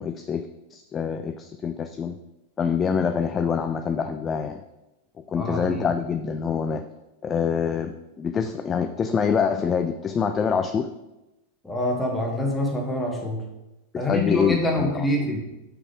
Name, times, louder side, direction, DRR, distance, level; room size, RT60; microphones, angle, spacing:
voice 1, 0.0-2.2 2.6-4.6 5.3-6.8 7.2-10.9 13.9-14.9, left 6 dB, 25° left, 8 dB, 0.4 m, -25 dB
voice 2, 5.3-5.9 11.6-13.4 13.9-15.4, left 1 dB, 5° left, -1 dB, 1.7 m, -26 dB
6.0 x 5.1 x 5.0 m, 0.98 s
figure-of-eight pair, 90°, 0 cm